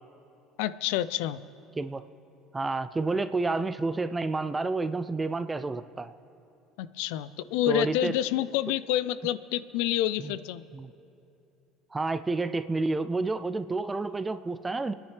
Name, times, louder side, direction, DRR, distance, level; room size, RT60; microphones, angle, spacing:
voice 1, 0.6-1.4 6.8-10.6, left 12 dB, 85° left, 16 dB, 0.4 m, -28 dB
voice 2, 2.5-6.1 7.7-8.2 10.2-10.3 10.7-10.9 11.9-14.9, right 3 dB, 15° right, 12 dB, 0.3 m, -29 dB
29.5 x 10.0 x 3.3 m, 2.8 s
cardioid pair, 130°, 0 cm